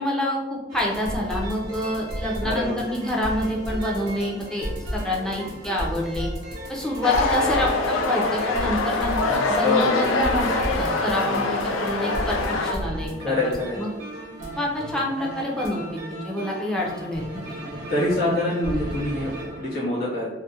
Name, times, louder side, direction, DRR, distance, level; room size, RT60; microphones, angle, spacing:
voice 1, 0.0-6.3 6.7-13.1 13.8-13.9 14.6-17.8, left 1 dB, 5° left, -3 dB, 0.3 m, -27 dB
sound 1, 0.7-19.8, equal, 85° right, 0.8 m, -34 dB
voice 2, 2.4-2.8 9.6-10.1 13.2-13.8 17.9-20.3, left 2 dB, 50° left, -8 dB, 0.9 m, -25 dB
sound 2, 7.0-12.7, left 2 dB, 80° left, 0.3 m, -24 dB
2.3 x 2.0 x 2.6 m, 1.1 s
head